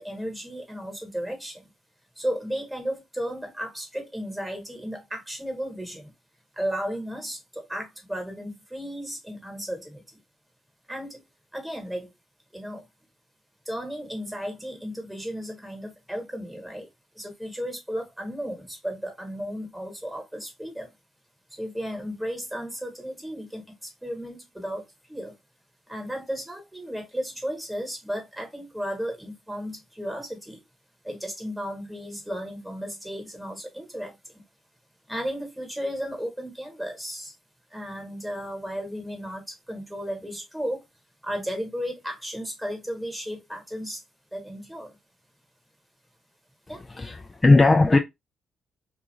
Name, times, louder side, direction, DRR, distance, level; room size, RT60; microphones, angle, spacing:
voice 1, 0.0-1.7 2.2-6.1 6.6-10.2 10.9-11.2 11.5-12.1 12.5-12.8 13.6-16.9 17.1-20.9 21.5-25.4 25.9-30.6 31.0-34.1 35.1-37.3 37.7-40.8 41.2-44.0 44.3-45.0 46.7-46.8, equal, 5° right, 1.2 m, -34 dB
voice 2, 46.9-48.0, left 3 dB, 20° left, 0.3 m, -18 dB
2.5 x 2.4 x 3.0 m
cardioid pair, 90°, 0 cm